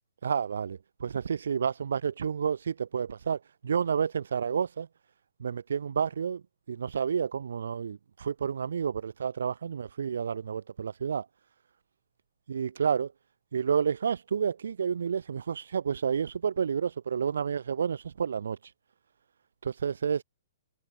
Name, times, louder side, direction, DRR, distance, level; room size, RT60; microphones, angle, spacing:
voice 1, 0.2-4.9 5.4-11.3 12.5-13.1 13.5-18.6 19.6-20.2, right 7 dB, 75° right, 0.7 m, -30 dB
hypercardioid pair, 125°, 0 cm